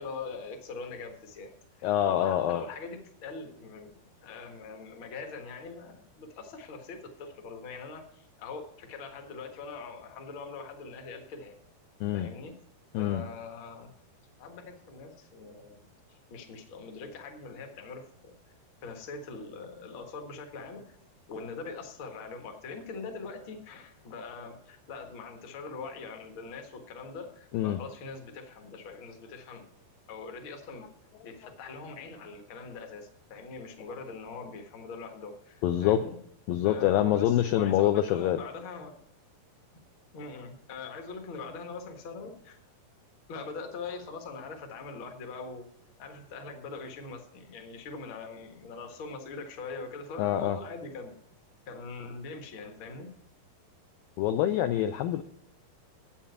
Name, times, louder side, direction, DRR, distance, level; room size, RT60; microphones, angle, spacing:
voice 1, 0.0-11.6 12.1-12.5 12.9-13.9 14.4-15.8 16.1-18.3 18.8-21.0 21.3-29.6 30.1-30.9 31.2-36.2 36.6-38.9 40.1-42.6 43.3-45.7 46.0-51.1 51.7-53.1, left 4 dB, 50° left, 4 dB, 1.5 m, -42 dB
voice 2, 1.8-2.6 12.0-12.3 12.9-13.2 27.5-27.8 35.6-36.0 36.5-38.4 50.2-50.6 54.2-55.2, left 12 dB, 80° left, 8 dB, 2.1 m, -25 dB
8.6 x 7.4 x 8.0 m, 0.70 s
omnidirectional pair, 4.6 m